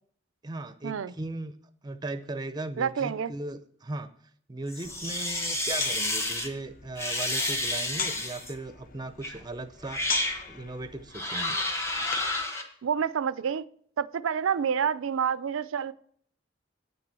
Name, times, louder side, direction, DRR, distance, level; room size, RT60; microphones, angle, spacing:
voice 1, 0.4-1.5 1.8-4.1 4.5-10.0 10.5-11.6, right 2 dB, 20° right, 11 dB, 0.5 m, -37 dB
voice 2, 2.8-3.3 12.8-13.6 14.0-15.9, right 7 dB, 90° right, 16 dB, 0.4 m, -28 dB
sound 1, 4.7-6.5 7.0-8.5 9.2-9.4 9.8-10.4 11.1-12.6, left 1 dB, 15° left, 1.2 m, -30 dB
sound 2, 4.8-12.4, left 6 dB, 45° left, 0.8 m, -40 dB
9.3 x 6.1 x 7.5 m, 0.62 s
head